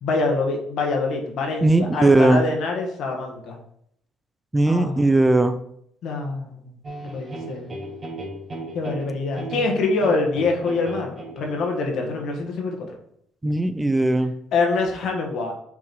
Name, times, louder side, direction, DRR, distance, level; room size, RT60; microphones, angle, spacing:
voice 1, 0.0-3.6 4.7-5.3 6.0-6.8 7.0-7.8 8.7-12.9 14.5-15.5, left 3 dB, 65° left, 2 dB, 1.5 m, -25 dB
voice 2, 1.6-2.4 4.5-5.6 13.4-14.3, right 2 dB, 15° right, 10 dB, 0.5 m, -18 dB
sound 1, 6.8-11.9, right 2 dB, 35° right, 1.5 m, -36 dB
5.9 x 3.7 x 4.5 m, 0.70 s
supercardioid pair, 80°, 0 cm